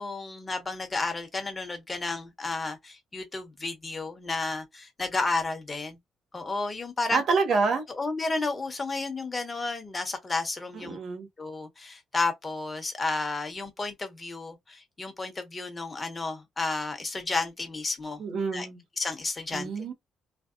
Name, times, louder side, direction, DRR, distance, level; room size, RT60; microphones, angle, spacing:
voice 1, 0.0-6.0 6.3-7.2 8.0-11.0 11.4-18.2 18.5-18.7 19.0-19.7, left 3 dB, 25° left, 1.2 m, -32 dB
voice 2, 7.1-7.8 10.7-11.3 18.2-18.8 19.5-19.9, right 4 dB, 65° right, 1.3 m, -27 dB
3.3 x 2.0 x 2.5 m
cardioid pair, 90°, 0 cm